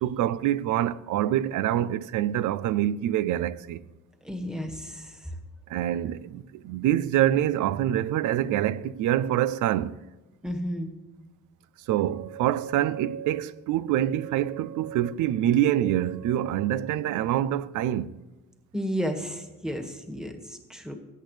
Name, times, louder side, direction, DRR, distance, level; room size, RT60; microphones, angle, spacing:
voice 1, 0.0-3.8 5.7-10.0 11.9-18.1, right 12 dB, 80° right, 0.5 m, -25 dB
voice 2, 4.2-5.3 10.4-10.9 18.7-21.0, equal, ahead, 1.7 m, -32 dB
21.0 x 8.6 x 3.3 m
cardioid pair, 90°, 30 cm